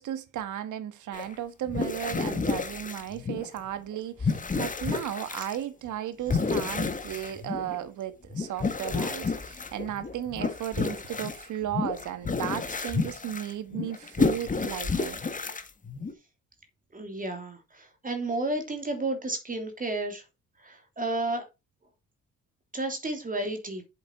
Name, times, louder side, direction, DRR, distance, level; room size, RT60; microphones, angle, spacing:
voice 1, 0.0-15.2, right 11 dB, 75° right, 1.6 m, -35 dB
sound 1, 1.1-1.3 1.7-3.7 3.9-5.6 6.3-7.8 8.2-16.1, left 4 dB, 25° left, 1.6 m, -30 dB
voice 2, 16.9-20.2 20.6-21.4 22.7-23.8, right 2 dB, 25° right, 2.8 m, -32 dB
8.0 x 7.6 x 4.5 m
cardioid pair, 90°, 30 cm